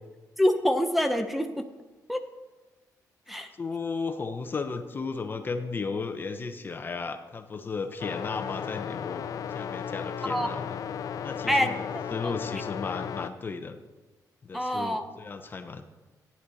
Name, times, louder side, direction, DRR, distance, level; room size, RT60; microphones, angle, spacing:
voice 1, 0.4-1.5 2.1-2.2 3.3-3.5 10.3-10.5 11.5-11.8 14.5-15.0, equal, ahead, 7 dB, 0.8 m, -25 dB
voice 2, 3.6-9.2 9.5-10.8 11.2-13.8 14.4-15.8, left 4 dB, 30° left, 8 dB, 0.8 m, -34 dB
sound 1, 8.0-13.3, left 8 dB, 60° left, 0.4 m, -35 dB
13.5 x 9.9 x 4.1 m, 1.2 s
cardioid pair, 125°, 7 cm